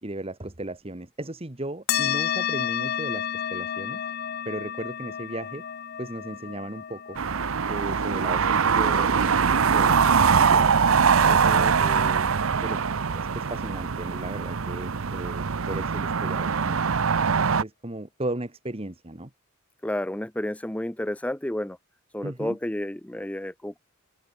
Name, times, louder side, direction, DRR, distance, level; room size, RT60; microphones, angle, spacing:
voice 1, 0.0-4.0 4.4-5.6 6.0-7.2 7.7-9.4 9.7-12.8 13.1-16.8 17.6-19.3 22.2-22.6, right 1 dB, 30° right, 1.7 m, -36 dB
sound 1, 1.9-10.8, left 9 dB, 50° left, 0.6 m, -32 dB
sound 2, 7.1-17.6, right 6 dB, 80° right, 0.7 m, -22 dB
voice 2, 19.8-21.8 22.1-23.8, left 1 dB, 5° left, 0.6 m, -31 dB
head